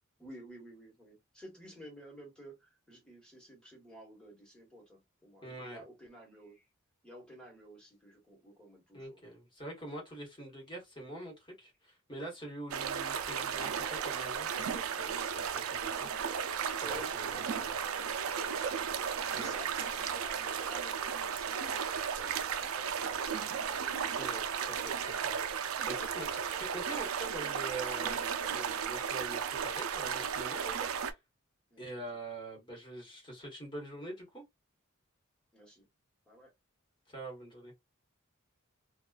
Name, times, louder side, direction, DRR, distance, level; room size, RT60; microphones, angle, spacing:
voice 1, 0.2-6.7 7.0-9.2 15.0-15.4 16.1-16.4 16.8-18.7 19.3-21.6 22.2-23.7 31.7-32.0 35.5-35.9 36.3-36.5, equal, 5° left, 1.1 m, -53 dB
voice 2, 5.4-5.8 8.9-15.2 15.5-16.1 16.7-17.7 19.3-19.5 24.1-31.2 31.8-34.4 37.1-37.7, right 1 dB, 25° left, 1.1 m, -45 dB
sound 1, 12.7-31.1, right 7 dB, 90° right, 0.4 m, -35 dB
2.3 x 2.3 x 2.3 m
head